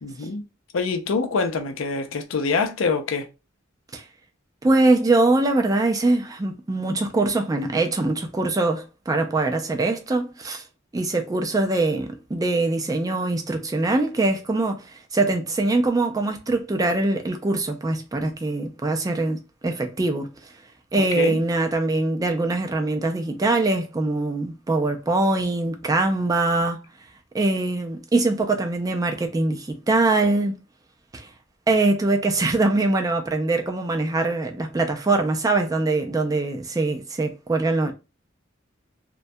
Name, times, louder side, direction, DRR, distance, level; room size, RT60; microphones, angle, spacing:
voice 1, 0.0-0.4 0.7-3.3 20.9-21.4, left 4 dB, 85° left, 0.5 m, -25 dB
voice 2, 4.6-10.6 10.9-20.5 20.9-26.8 27.3-30.6 31.1-31.3 31.7-37.9, right 2 dB, 20° right, 0.3 m, -23 dB
2.2 x 2.1 x 2.6 m
head